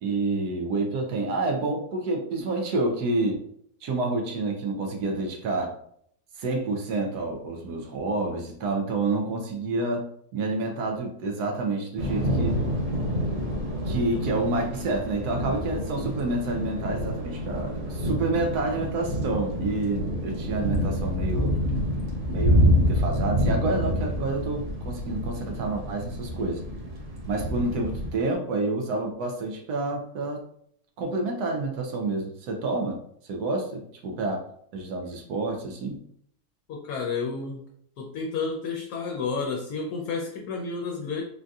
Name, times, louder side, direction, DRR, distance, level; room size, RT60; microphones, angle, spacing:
voice 1, 0.0-3.4 3.8-5.7 6.4-12.6 13.9-21.6 22.2-26.6 27.3-30.4 31.0-33.0 33.2-34.4 34.7-36.0, right 2 dB, 85° right, 2 dB, 1.2 m, -28 dB
Thunder / Rain, 12.0-28.1, equal, 65° right, 0.3 m, -27 dB
voice 2, 36.7-37.6 38.0-41.2, left 4 dB, 75° left, 0 dB, 1.0 m, -31 dB
3.7 x 2.6 x 2.3 m, 0.67 s
omnidirectional pair, 1.6 m